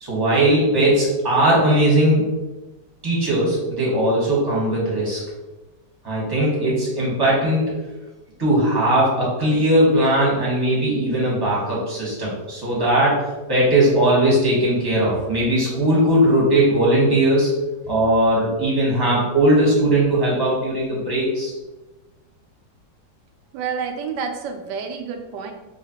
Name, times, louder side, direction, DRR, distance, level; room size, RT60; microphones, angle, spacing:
voice 1, 0.0-2.2 3.0-5.2 6.0-7.8 8.4-17.5 17.9-21.5, right 1 dB, 15° right, -7 dB, 1.1 m, -19 dB
voice 2, 23.5-25.5, right 6 dB, 80° right, 4 dB, 1.2 m, -29 dB
4.1 x 2.9 x 2.8 m, 1.1 s
omnidirectional pair, 1.9 m